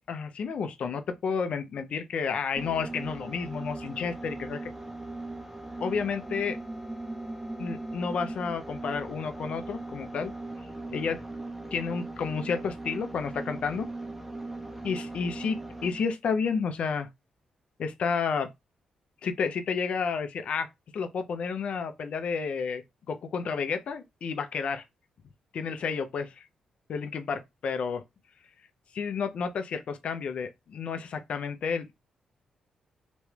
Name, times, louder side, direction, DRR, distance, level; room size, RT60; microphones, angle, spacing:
voice 1, 0.1-4.7 5.8-6.6 7.6-10.3 10.9-11.2 11.7-13.9 14.8-15.6 15.8-17.1 17.8-18.5 19.2-20.7 20.9-22.8 23.1-24.8 25.5-26.4 26.9-28.0 28.9-31.9, left 5 dB, 65° left, 0.5 m, -31 dB
sound 1, 2.6-16.1, right 2 dB, 10° right, 0.6 m, -39 dB
3.0 x 2.2 x 3.2 m
cardioid pair, 60°, 2 cm